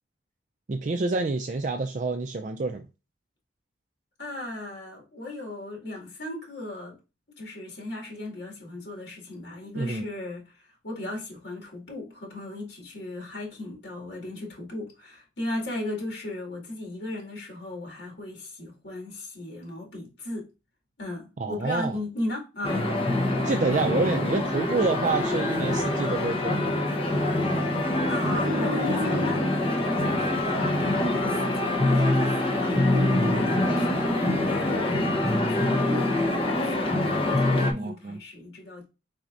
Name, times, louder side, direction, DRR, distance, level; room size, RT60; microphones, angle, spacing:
voice 1, 0.7-2.9 9.7-10.0 21.4-22.0 23.4-26.7 37.7-38.2, right 3 dB, 45° right, 0.4 m, -28 dB
voice 2, 4.2-7.0 7.4-20.5 21.0-22.9 28.1-38.8, left 1 dB, 80° left, 2.2 m, -36 dB
sound 1, 22.6-37.7, left 1 dB, 30° left, 0.9 m, -25 dB
4.6 x 4.1 x 2.5 m
head